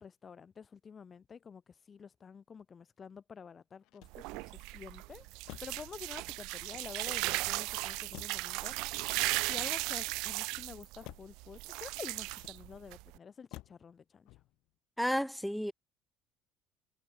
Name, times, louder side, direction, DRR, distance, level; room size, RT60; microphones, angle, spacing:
voice 1, 0.0-5.2 5.6-8.8 9.1-9.2 9.5-14.4, left 6 dB, 20° left, 6.1 m, -49 dB
Motor vehicle (road), 3.8-4.6 5.4-5.9 6.6-7.3 8.1-8.6 9.4-10.1 11.0-11.4 12.3-12.9 13.5-13.9 14.3-14.7, left 19 dB, 60° left, 4.9 m, -53 dB
sound 1, 4.0-13.2, right 25 dB, 75° right, 2.3 m, -36 dB
voice 2, 15.0-15.7, equal, ahead, 3.0 m, -32 dB
cardioid pair, 170°, 0 cm